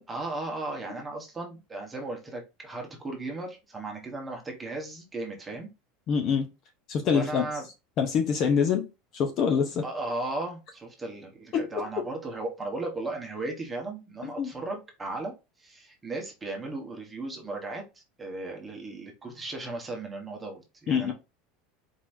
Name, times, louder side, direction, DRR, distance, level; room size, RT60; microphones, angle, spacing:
voice 1, 0.1-5.7 7.1-7.7 9.8-21.1, right 2 dB, 10° right, 1.1 m, -36 dB
voice 2, 6.1-6.5 6.9-7.5 8.0-8.9 9.1-9.8 11.5-12.1 14.2-14.5 20.9-21.1, left 6 dB, 30° left, 0.6 m, -25 dB
4.5 x 4.0 x 2.6 m
supercardioid pair, 175°, 0 cm